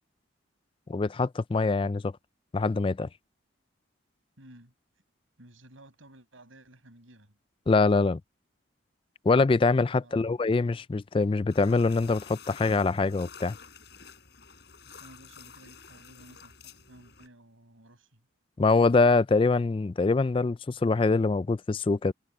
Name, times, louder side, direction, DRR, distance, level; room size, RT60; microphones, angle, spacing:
voice 1, 0.9-2.0 2.5-3.1 7.7-8.2 9.3-13.5 18.6-22.1, left 3 dB, 25° left, 0.3 m, -24 dB
voice 2, 4.4-4.7 5.4-7.4 9.9-10.2 14.8-18.3, right 1 dB, 80° right, 6.1 m, -54 dB
sound 1, 11.5-17.3, left 6 dB, 55° left, 5.3 m, -50 dB
head